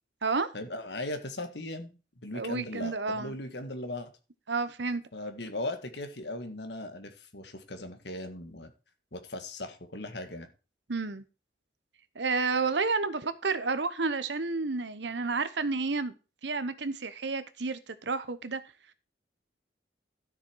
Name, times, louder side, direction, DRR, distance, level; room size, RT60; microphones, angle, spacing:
voice 1, 0.5-4.1 5.1-8.7 9.1-10.5, left 1 dB, 70° left, 1.8 m, -38 dB
voice 2, 2.3-3.3 4.5-5.0 10.9-11.2 12.1-16.1 16.4-18.6, right 4 dB, 75° right, 1.1 m, -30 dB
12.5 x 6.8 x 4.6 m
head